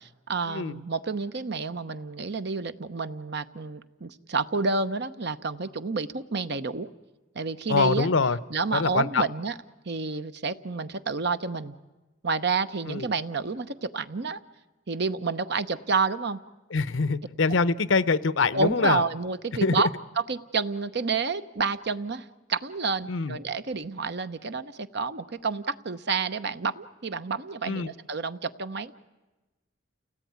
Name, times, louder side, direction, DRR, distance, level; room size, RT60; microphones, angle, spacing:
voice 1, 0.3-6.9 7.3-8.1 8.5-9.6 9.8-11.7 12.2-14.4 14.9-16.4 18.5-19.9 20.2-28.9, right 4 dB, 60° right, 0.9 m, -29 dB
voice 2, 7.7-8.4 8.7-9.2 12.9-13.1 16.7-19.0 19.6-19.8 23.1-23.4 27.6-27.9, left 4 dB, 80° left, 0.8 m, -24 dB
29.5 x 18.0 x 9.5 m
head